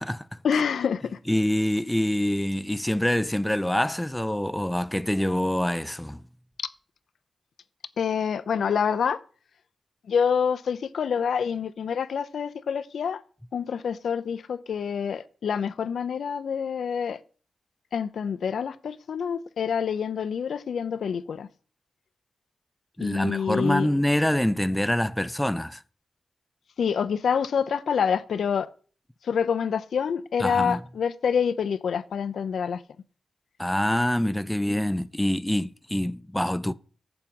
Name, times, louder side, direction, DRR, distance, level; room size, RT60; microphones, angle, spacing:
voice 1, 0.4-1.2 8.0-9.2 10.1-13.2 13.5-17.2 17.9-21.5 23.0-23.9 26.8-28.7 29.2-32.8, left 7 dB, 75° left, 0.5 m, -27 dB
voice 2, 1.3-6.2 23.0-25.8 30.4-30.8 33.6-36.7, left 1 dB, 5° left, 0.4 m, -25 dB
7.3 x 6.9 x 5.3 m
cardioid pair, 60°, 0 cm